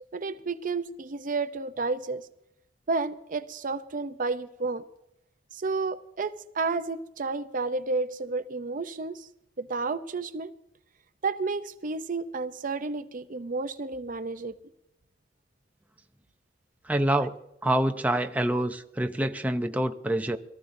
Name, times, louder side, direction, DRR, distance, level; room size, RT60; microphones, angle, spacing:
voice 1, 0.0-2.3 2.9-4.9 5.5-9.3 9.6-10.5 11.2-14.5, right 3 dB, 45° right, 0.6 m, -31 dB
voice 2, 16.9-17.3 17.6-20.4, right 1 dB, 10° right, 0.7 m, -26 dB
23.0 x 14.0 x 2.7 m
head